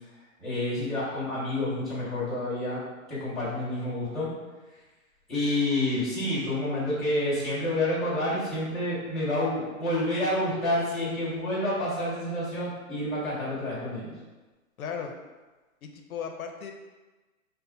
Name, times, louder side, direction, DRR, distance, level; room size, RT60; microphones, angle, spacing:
voice 1, 0.4-2.8 3.1-4.3 5.3-14.1, left 1 dB, ahead, -13 dB, 1.4 m, -28 dB
voice 2, 14.8-15.1 15.8-16.7, left 7 dB, 85° left, 3 dB, 0.7 m, -36 dB
5.4 x 2.1 x 4.1 m, 1.2 s
hypercardioid pair, 165°, 42 cm